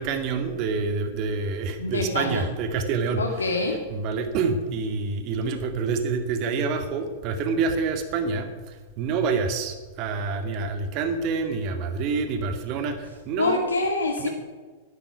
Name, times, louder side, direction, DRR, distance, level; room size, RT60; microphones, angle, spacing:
voice 1, 0.0-3.2 3.9-13.6 14.2-14.3, right 4 dB, 45° right, 6 dB, 2.2 m, -27 dB
voice 2, 1.8-2.5 3.2-3.8 13.4-14.3, left 3 dB, 90° left, 2 dB, 2.1 m, -25 dB
12.0 x 10.5 x 9.9 m, 1.4 s
hypercardioid pair, 105°, 0 cm